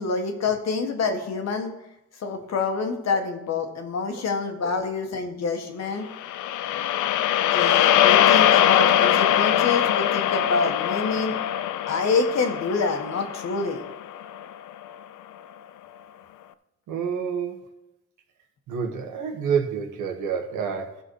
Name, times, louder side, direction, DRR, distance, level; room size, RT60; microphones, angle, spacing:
voice 1, 0.0-1.7 2.2-6.1 7.5-11.3 11.9-13.8, left 4 dB, 60° left, 4 dB, 1.7 m, -26 dB
sound 1, 6.1-14.5, left 11 dB, 80° left, 0.6 m, -22 dB
voice 2, 16.9-17.6 18.7-21.0, right 6 dB, 80° right, 3 dB, 1.6 m, -28 dB
14.5 x 5.5 x 4.8 m, 0.90 s
cardioid pair, 90°, 30 cm